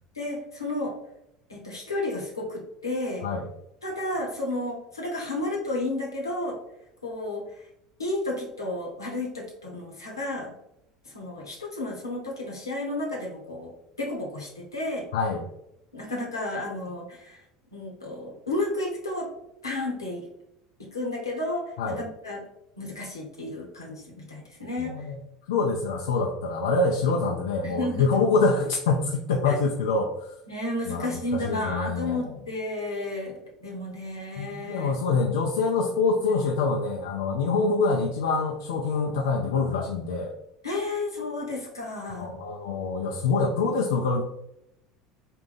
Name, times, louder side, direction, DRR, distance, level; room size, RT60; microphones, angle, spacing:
voice 1, 0.1-1.0 1.5-3.2 3.8-6.6 7.0-7.4 8.0-10.5 11.1-13.7 14.0-15.1 15.9-17.4 17.7-19.3 19.6-20.3 20.8-22.4 22.8-25.0 27.6-28.1 29.4-29.6 30.5-33.3 33.6-35.0 37.6-37.7 40.6-42.3, left 2 dB, 85° left, -2 dB, 1.0 m, -32 dB
voice 2, 15.1-15.5 21.8-22.0 24.8-25.2 25.5-30.3 30.9-32.3 34.4-40.3 42.1-44.2, left 4 dB, 70° left, 0 dB, 0.4 m, -25 dB
3.8 x 2.2 x 3.9 m, 0.81 s
figure-of-eight pair, 70°, 2 cm